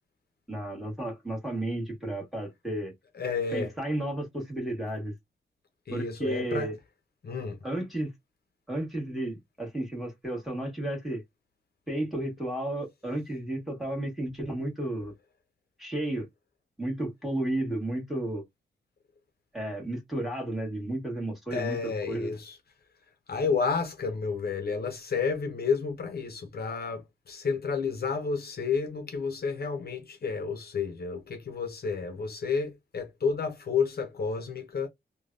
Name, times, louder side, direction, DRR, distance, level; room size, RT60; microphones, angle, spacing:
voice 1, 0.5-2.9 3.5-5.1 5.9-6.7 7.6-8.1 8.7-11.2 11.9-15.1 15.8-16.3 16.8-18.4 19.5-22.3, right 1 dB, ahead, 1.5 m, -32 dB
voice 2, 3.1-3.7 5.9-6.7 7.2-7.6 21.5-22.6 23.3-34.9, left 5 dB, 55° left, 0.6 m, -31 dB
3.2 x 2.2 x 2.5 m
wide cardioid pair, 115°, 19 cm